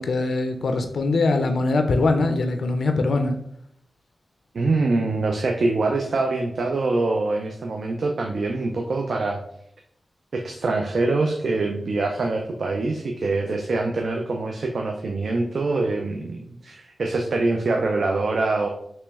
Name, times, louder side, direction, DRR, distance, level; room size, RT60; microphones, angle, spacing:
voice 1, 0.0-3.4, left 3 dB, 80° left, 6 dB, 0.4 m, -22 dB
voice 2, 4.5-9.4 10.3-18.7, right 3 dB, 75° right, 3 dB, 0.4 m, -24 dB
3.0 x 3.0 x 3.4 m, 0.71 s
cardioid pair, 65°, 0 cm